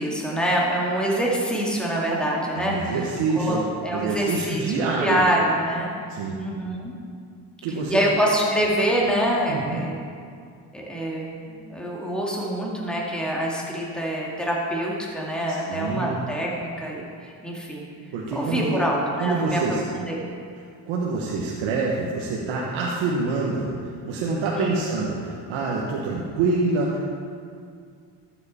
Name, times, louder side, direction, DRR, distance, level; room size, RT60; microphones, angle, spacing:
voice 1, 0.0-3.1 3.3-3.6 3.8-5.9 6.4-6.9 7.9-10.0 10.7-17.9 18.3-20.2 24.6-24.7, right 1 dB, ahead, -4 dB, 2.4 m, -25 dB
voice 2, 2.5-3.6 3.9-5.2 6.1-6.4 7.6-8.0 9.5-9.8 15.7-16.2 18.1-18.8 19.2-19.8 20.9-23.7 24.0-27.1, right 3 dB, 85° right, -3 dB, 1.3 m, -26 dB
13.0 x 7.8 x 4.3 m, 2.3 s
supercardioid pair, 75°, 46 cm